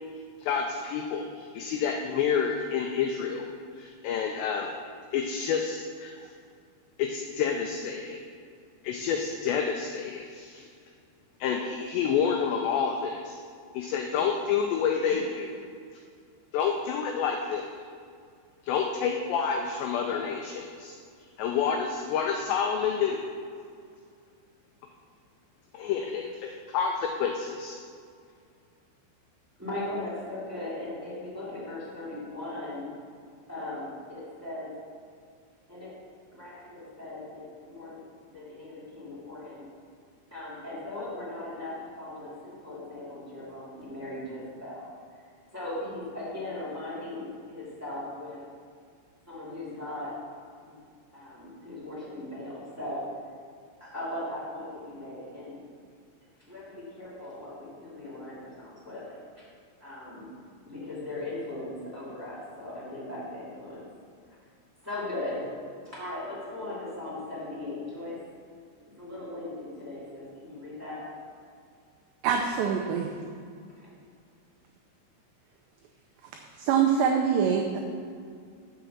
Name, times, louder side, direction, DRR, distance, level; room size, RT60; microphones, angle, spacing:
voice 1, 0.4-3.5 3.8-4.7 5.1-6.3 7.0-8.2 8.8-10.7 11.4-13.4 13.7-15.5 16.5-17.7 18.6-21.0 21.4-23.2 25.7-27.8, left 6 dB, 90° left, 2 dB, 2.4 m, -29 dB
voice 2, 29.6-32.9 33.5-34.7 35.7-35.9 36.3-38.0 38.3-39.6 40.3-44.9 45.5-48.4 49.3-50.1 50.6-50.8 51.1-53.0 53.8-55.6 56.5-59.4 59.8-60.3 60.6-63.8 64.2-64.4 64.8-65.5 65.8-68.2 69.0-71.1 73.8-73.9, left 1 dB, 15° right, -10 dB, 0.5 m, -38 dB
voice 3, 72.2-73.1 76.6-77.8, right 7 dB, 85° right, 2 dB, 2.4 m, -24 dB
7.3 x 6.7 x 7.1 m, 2.2 s
omnidirectional pair, 5.7 m